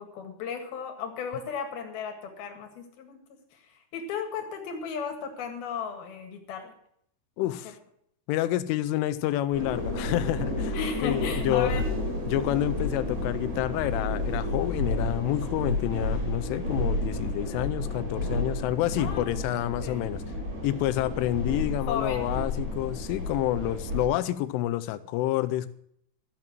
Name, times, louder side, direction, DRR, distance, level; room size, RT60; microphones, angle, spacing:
voice 1, 0.0-3.2 3.9-6.7 7.4-7.5 10.7-11.9 19.0-19.3 19.8-20.0 21.9-22.3, left 6 dB, 60° left, 5 dB, 3.3 m, -35 dB
voice 2, 7.4-7.8 8.3-10.8 11.0-11.8 12.3-20.2 20.6-25.7, left 14 dB, 85° left, 11 dB, 3.2 m, -28 dB
sound 1, 9.5-24.0, left 1 dB, 45° right, 5.7 m, -31 dB
13.5 x 7.6 x 7.6 m, 0.70 s
omnidirectional pair, 5.6 m